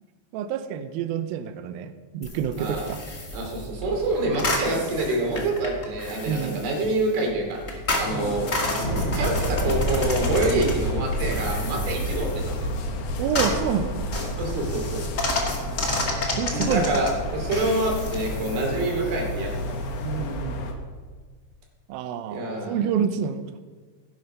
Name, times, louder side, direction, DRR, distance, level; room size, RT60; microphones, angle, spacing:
voice 1, 0.3-3.0 6.3-6.6 8.1-8.4 13.2-14.1 16.4-16.9 20.0-20.6 21.9-23.4, right 8 dB, 85° right, 10 dB, 2.1 m, -28 dB
sound 1, 2.2-20.4, left 1 dB, 45° left, 1.0 m, -32 dB
voice 2, 2.6-2.9 3.3-8.8 9.1-12.7 14.4-15.0 16.5-19.5 22.3-22.8, right 2 dB, 60° right, 1 dB, 4.5 m, -26 dB
sound 2, 8.0-20.7, left 2 dB, 80° left, 3.7 m, -33 dB
Thunder, 8.8-19.5, right 1 dB, 30° right, 5.3 m, -31 dB
16.5 x 10.0 x 5.6 m, 1.5 s
omnidirectional pair, 5.1 m